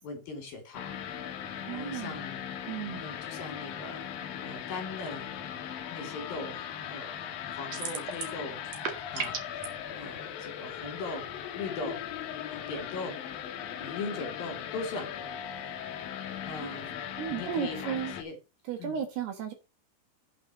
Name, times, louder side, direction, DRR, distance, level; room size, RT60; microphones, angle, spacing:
voice 1, 0.0-1.0 1.7-2.5 3.0-5.3 5.9-6.6 6.9-7.2 7.5-8.6 9.1-9.5 9.9-12.0 12.5-13.2 13.8-15.1 16.5-17.0 17.3-18.4 18.8-19.0, left 3 dB, 55° left, 4.0 m, -39 dB
sound 1, 0.7-18.2, left 9 dB, 70° left, 2.2 m, -39 dB
voice 2, 1.7-2.2 2.7-3.0 17.2-18.1 18.7-19.5, right 8 dB, 65° right, 3.0 m, -34 dB
sound 2, 7.7-8.4 8.6-9.7, right 6 dB, 50° right, 2.1 m, -34 dB
8.9 x 5.9 x 6.2 m
omnidirectional pair, 5.7 m